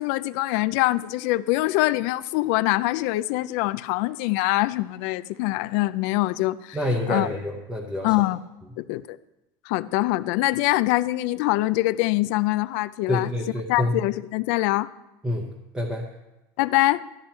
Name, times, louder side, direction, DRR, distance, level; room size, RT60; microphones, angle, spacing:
voice 1, 0.0-6.8 7.1-7.3 8.0-8.4 8.8-9.2 9.7-13.3 13.7-14.9 16.6-17.0, left 18 dB, 55° left, 0.4 m, -24 dB
voice 2, 6.7-8.1 13.1-13.9 15.2-15.5 15.7-16.1, left 1 dB, 5° right, 0.8 m, -27 dB
13.0 x 10.5 x 4.4 m
cardioid pair, 175°, 10 cm